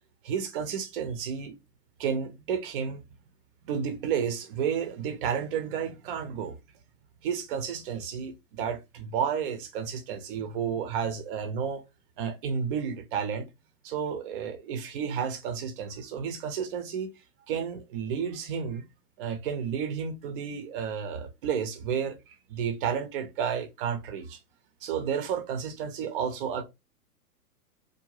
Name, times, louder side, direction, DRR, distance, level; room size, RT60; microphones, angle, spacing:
voice 1, 0.2-1.5 2.0-3.0 3.7-6.6 7.2-11.8 12.2-13.5 13.8-17.1 17.5-18.9 19.2-24.4 24.8-26.6, right 7 dB, 35° right, 0.6 m, -31 dB
2.5 x 2.1 x 3.1 m
figure-of-eight pair, 115°, 47 cm